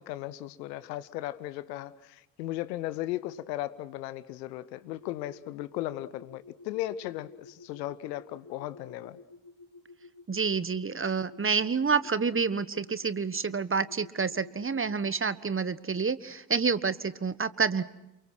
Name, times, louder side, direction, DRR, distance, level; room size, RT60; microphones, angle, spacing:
voice 1, 0.0-9.2, left 15 dB, 80° left, 16 dB, 1.1 m, -36 dB
sound 1, 4.8-15.1, left 3 dB, 45° left, 5.2 m, -52 dB
voice 2, 10.3-17.8, right 5 dB, 25° right, 16 dB, 1.4 m, -28 dB
29.0 x 23.5 x 6.2 m, 0.91 s
hypercardioid pair, 45°, 49 cm